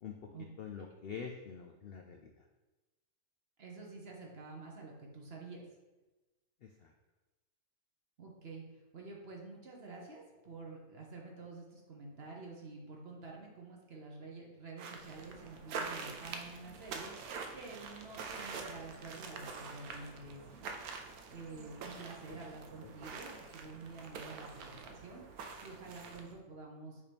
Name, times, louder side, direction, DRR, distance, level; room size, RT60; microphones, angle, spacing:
voice 1, 0.6-2.3 6.6-6.9 22.3-22.4 22.8-23.0, left 6 dB, 75° left, 3 dB, 0.5 m, -46 dB
voice 2, 3.6-5.6 8.2-8.6 8.9-20.8 21.3-27.0, right 3 dB, 45° right, -1 dB, 1.1 m, -49 dB
sound 1, 14.8-26.4, right 5 dB, 80° right, 1.1 m, -46 dB
6.5 x 2.9 x 5.1 m, 1.1 s
omnidirectional pair, 1.5 m